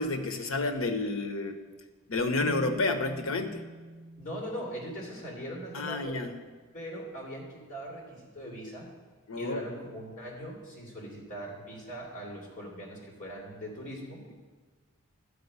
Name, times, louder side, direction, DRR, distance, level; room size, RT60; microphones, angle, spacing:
voice 1, 0.0-1.6 2.1-3.6 5.7-6.3 9.3-9.6, left 2 dB, 75° left, 8 dB, 0.9 m, -30 dB
sound 1, 2.4-6.7, right 1 dB, 10° left, 0.9 m, -47 dB
voice 2, 4.2-6.2 6.7-8.9 9.4-14.2, equal, 40° left, -1 dB, 2.6 m, -40 dB
12.0 x 4.9 x 8.1 m, 1.4 s
head